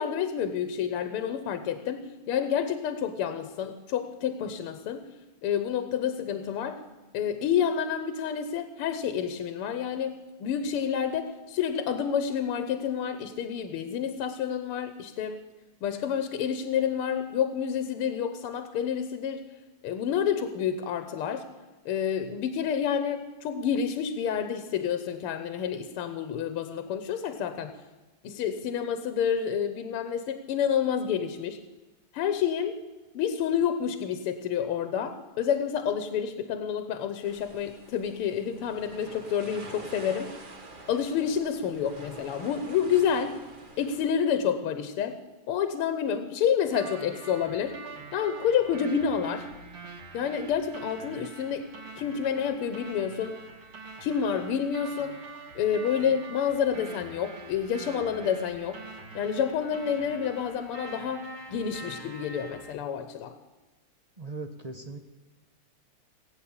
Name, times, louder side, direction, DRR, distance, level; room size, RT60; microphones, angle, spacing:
voice 1, 0.0-5.1 5.4-6.8 7.1-15.4 15.8-19.5 19.8-21.5 21.9-27.7 28.2-31.6 32.1-32.8 33.2-40.4 40.9-43.4 43.8-45.2 45.5-47.8 48.1-49.5 50.1-51.7 52.0-53.4 54.0-55.2 55.6-58.8 59.2-63.4, left 8 dB, 85° left, 9 dB, 1.8 m, -29 dB
sound 1, 37.2-44.1, right 3 dB, 30° right, 1.1 m, -47 dB
sound 2, 46.7-62.7, right 3 dB, 70° right, 3.2 m, -45 dB
voice 2, 64.2-65.0, right 3 dB, 55° right, 6 dB, 0.4 m, -38 dB
19.5 x 8.4 x 8.7 m, 1.2 s
omnidirectional pair, 2.4 m